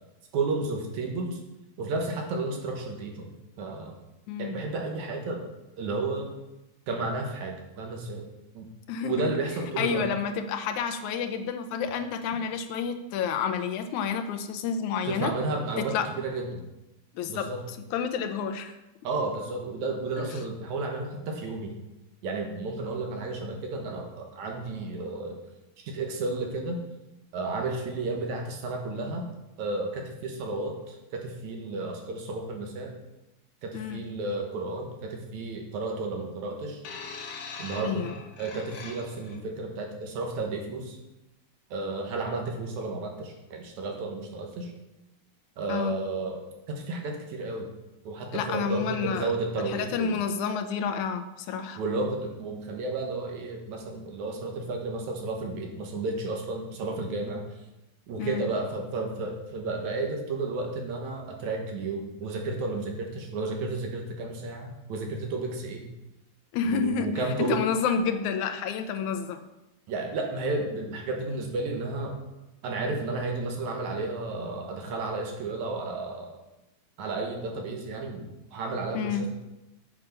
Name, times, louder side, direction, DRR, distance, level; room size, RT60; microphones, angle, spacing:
voice 1, 0.3-1.4 1.8-4.0 4.4-5.4 5.8-6.4 6.9-8.3 8.5-8.7 9.0-10.1 15.1-16.6 17.3-17.6 19.0-21.7 22.2-25.4 25.8-26.8 27.3-29.3 29.6-32.9 33.6-36.8 37.6-38.1 38.4-41.0 41.7-44.7 45.6-46.4 46.7-47.7 48.0-50.2 51.8-57.4 58.1-65.9 66.6-67.6 69.9-72.2 72.6-76.3 77.0-78.2 78.5-79.3, right 3 dB, 80° right, 2 dB, 2.7 m, -32 dB
voice 2, 8.9-9.3 9.8-15.3 15.8-16.1 17.2-17.5 17.9-18.7 33.7-34.1 37.8-38.1 45.7-46.0 48.3-49.3 49.7-51.8 58.2-58.4 66.5-67.1 67.4-69.5 78.9-79.3, left 6 dB, 90° left, 7 dB, 2.2 m, -29 dB
sound 1, 36.8-39.4 40.3-40.5, left 4 dB, 65° left, 1.0 m, -41 dB
7.4 x 6.8 x 5.7 m, 0.95 s
omnidirectional pair, 3.3 m